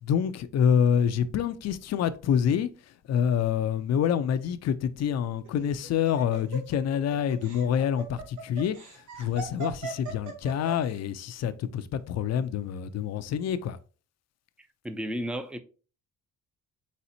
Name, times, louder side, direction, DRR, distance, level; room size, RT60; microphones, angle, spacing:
voice 1, 0.0-13.8, left 8 dB, 60° left, 0.5 m, -27 dB
Laughter, 5.5-10.9, right 4 dB, 75° right, 1.1 m, -39 dB
voice 2, 14.6-15.6, equal, 5° right, 0.5 m, -34 dB
4.2 x 4.0 x 2.7 m
cardioid pair, 90°, 30 cm